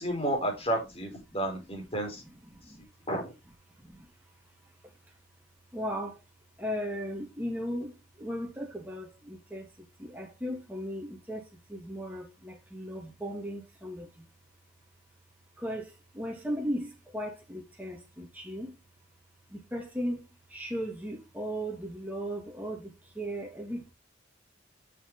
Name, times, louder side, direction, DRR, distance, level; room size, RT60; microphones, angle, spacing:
voice 1, 0.0-2.2 3.1-3.3, right 1 dB, 30° left, 4.0 m, -31 dB
voice 2, 5.7-6.2 6.6-9.7 10.0-14.3 15.6-18.8 19.5-20.2 20.5-23.9, equal, 10° right, 2.5 m, -37 dB
7.4 x 6.8 x 3.8 m
head